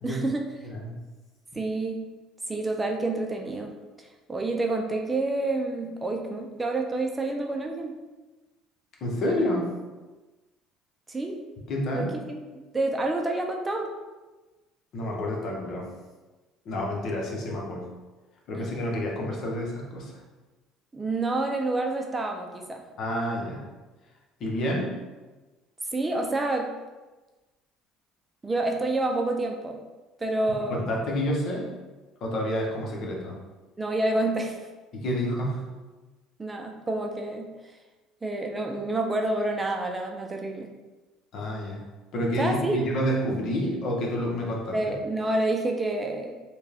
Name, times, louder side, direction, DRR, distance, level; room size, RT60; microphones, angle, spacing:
voice 1, 0.0-0.5 1.5-2.1 2.5-3.7 4.0-8.0 11.1-11.4 11.9-13.9 18.5-18.6 20.9-22.8 25.9-26.7 28.4-29.8 30.2-30.8 33.8-34.6 36.4-37.5 38.2-40.7 42.4-42.8 44.7-46.4, right 2 dB, 20° right, 2 dB, 0.5 m, -28 dB
voice 2, 9.0-9.7 11.7-12.1 14.9-15.9 16.6-17.9 18.5-20.2 23.0-23.6 24.4-24.9 30.7-31.7 32.2-33.4 34.9-35.6 41.3-41.8 42.1-44.8, equal, 60° left, -1 dB, 1.0 m, -29 dB
4.3 x 2.3 x 3.5 m, 1.2 s
supercardioid pair, 80°, 0 cm